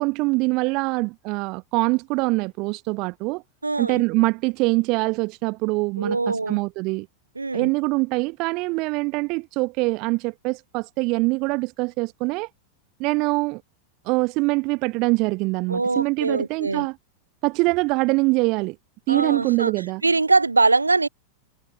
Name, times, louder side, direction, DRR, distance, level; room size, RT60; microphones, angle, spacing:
voice 1, 0.0-3.4 3.8-7.1 7.5-12.5 13.0-13.6 14.0-17.0 17.4-18.8 19.1-20.0, right 26 dB, 40° right, 1.1 m, -24 dB
voice 2, 3.6-4.0 6.0-6.6 7.4-7.7 15.7-16.9 19.1-19.7 20.0-21.1, right 3 dB, 80° right, 0.7 m, -22 dB
figure-of-eight pair, 90°, 0 cm